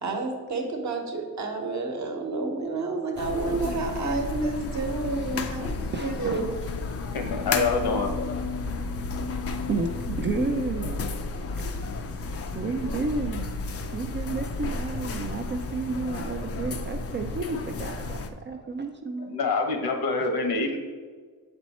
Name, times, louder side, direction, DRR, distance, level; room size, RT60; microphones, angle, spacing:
voice 1, 0.0-5.7 6.0-6.4, right 3 dB, 50° right, 2 dB, 1.1 m, -29 dB
sound 1, 3.2-18.3, left 3 dB, 40° left, 0.5 m, -32 dB
voice 2, 5.1-5.6 5.9-6.4 9.7-11.0 11.5-11.7 12.5-13.6 13.9-18.2 18.4-19.4, right 4 dB, 30° right, 4 dB, 0.4 m, -31 dB
voice 3, 7.1-8.1 19.3-20.8, left 3 dB, 75° left, 5 dB, 1.1 m, -26 dB
7.1 x 4.4 x 4.2 m, 1.5 s
cardioid pair, 135°, 37 cm